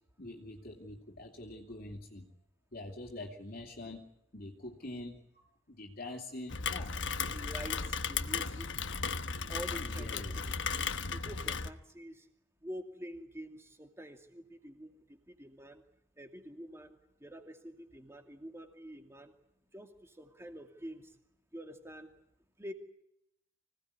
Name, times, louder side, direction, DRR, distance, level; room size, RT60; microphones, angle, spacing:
voice 1, 0.2-2.3 2.7-6.9 9.8-10.4, left 2 dB, 50° left, 1 dB, 2.7 m, -45 dB
Rain, 6.5-11.7, left 5 dB, 70° left, 1.2 m, -35 dB
voice 2, 7.2-8.9 9.5-10.5 11.1-12.3 12.6-15.8 16.2-19.3 19.7-21.2 21.5-22.2 22.6-22.7, equal, 15° right, 5 dB, 2.5 m, -47 dB
25.5 x 18.0 x 9.7 m, 0.77 s
head